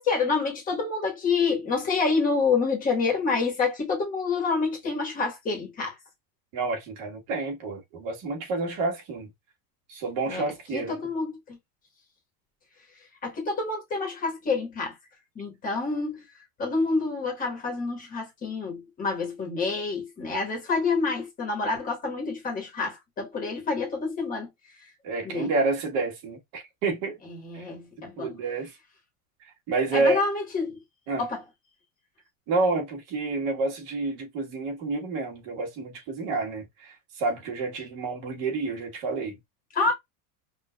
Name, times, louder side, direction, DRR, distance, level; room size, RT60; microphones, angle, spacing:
voice 1, 0.0-5.9 10.3-10.4 10.7-11.6 13.2-14.9 15.3-16.2 16.6-24.5 25.2-25.5 27.3-28.3 29.9-30.8 31.2-31.4 39.7-39.9, left 4 dB, 20° left, 1.2 m, -27 dB
voice 2, 6.5-9.3 9.9-11.0 25.0-27.2 27.5-27.6 28.2-28.7 29.7-30.2 31.1-31.2 32.5-39.4, right 3 dB, 40° right, 1.5 m, -29 dB
5.4 x 2.5 x 2.3 m
supercardioid pair, 175°, 45 cm